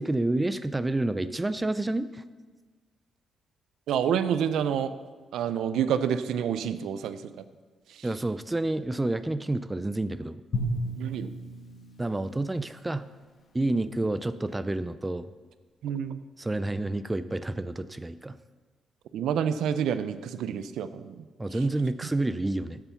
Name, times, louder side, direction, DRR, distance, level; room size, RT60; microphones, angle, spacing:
voice 1, 0.0-2.2 8.0-10.4 12.0-13.1 13.5-15.3 16.4-18.4 21.4-22.8, right 2 dB, 10° right, 12 dB, 0.3 m, -29 dB
voice 2, 3.9-4.9 5.3-7.3 7.9-8.0 11.0-11.3 13.7-13.8 15.8-16.2 19.1-21.2, right 8 dB, 85° right, 12 dB, 0.6 m, -28 dB
Drum, 10.5-12.9, equal, 40° left, 1.2 m, -34 dB
12.5 x 6.9 x 5.7 m, 1.4 s
cardioid pair, 175°, 0 cm